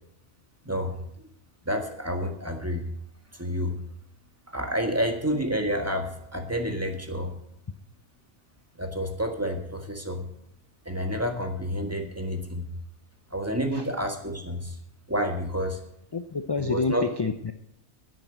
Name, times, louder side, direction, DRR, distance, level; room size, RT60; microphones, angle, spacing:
voice 1, 0.6-1.0 1.6-2.9 3.3-3.8 4.5-7.3 8.8-10.2 10.8-12.7 13.3-14.8 15.1-15.8 16.6-17.0, equal, 10° right, 5 dB, 1.6 m, -29 dB
voice 2, 16.1-17.5, left 4 dB, 35° left, 8 dB, 0.4 m, -28 dB
10.5 x 9.1 x 8.0 m, 0.72 s
omnidirectional pair, 1.2 m